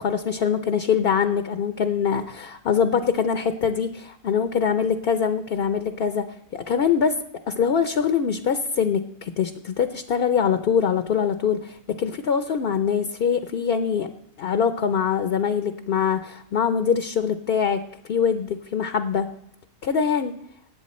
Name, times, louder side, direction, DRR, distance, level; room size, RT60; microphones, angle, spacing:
voice 1, 0.0-6.3 6.5-7.2 7.5-14.1 14.4-19.3 19.8-20.4, left 7 dB, 55° left, 9 dB, 0.7 m, -23 dB
18.5 x 7.9 x 4.2 m, 0.76 s
omnidirectional pair, 1.4 m